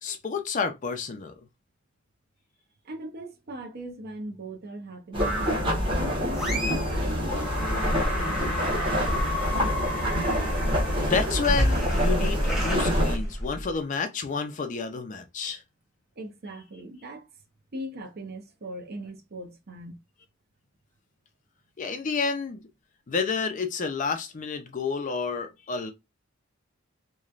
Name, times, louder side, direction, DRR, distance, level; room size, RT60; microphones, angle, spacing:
voice 1, 0.0-1.3 11.0-15.6 21.8-22.6 23.1-25.9, left 5 dB, 40° left, 0.4 m, -30 dB
voice 2, 2.8-8.9 16.2-17.3 17.7-20.0, right 1 dB, 50° right, 0.6 m, -39 dB
sound 1, 5.1-13.2, equal, 25° right, 1.0 m, -27 dB
sound 2, 5.2-5.8 6.3-7.0 7.3-13.7, equal, ahead, 0.9 m, -30 dB
3.0 x 2.2 x 2.4 m
head